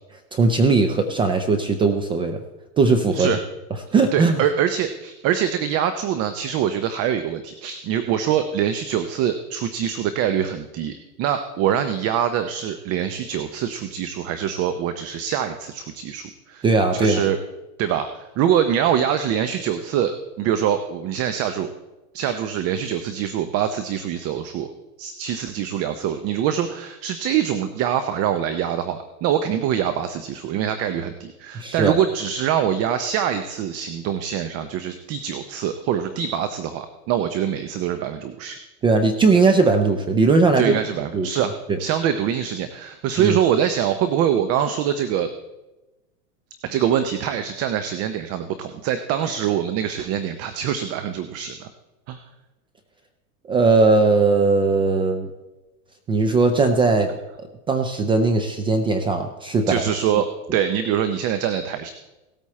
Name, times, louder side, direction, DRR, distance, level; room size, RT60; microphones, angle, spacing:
voice 1, 0.3-2.4 2.8-3.3 3.9-4.4 16.6-17.3 31.5-32.0 38.8-40.8 41.1-41.3 43.2-43.4 53.5-55.3 56.1-57.1 57.7-59.8, right 3 dB, 10° right, 6 dB, 0.4 m, -18 dB
voice 2, 4.1-16.6 16.9-17.4 17.8-21.7 22.1-24.7 25.0-38.6 40.6-41.5 41.8-45.3 46.6-51.7 52.1-52.2 59.7-61.9, right 9 dB, 35° right, 10 dB, 0.7 m, -24 dB
17.5 x 8.6 x 4.3 m, 1.0 s
supercardioid pair, 130°, 45 cm